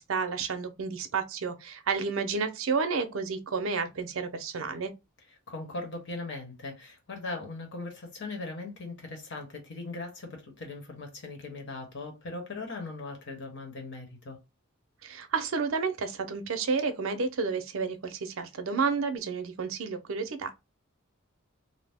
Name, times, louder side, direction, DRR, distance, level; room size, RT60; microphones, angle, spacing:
voice 1, 0.0-4.9 15.0-20.5, right 5 dB, 70° right, 0.6 m, -31 dB
voice 2, 5.3-14.4, left 3 dB, 60° left, 1.1 m, -39 dB
2.7 x 2.0 x 3.4 m
head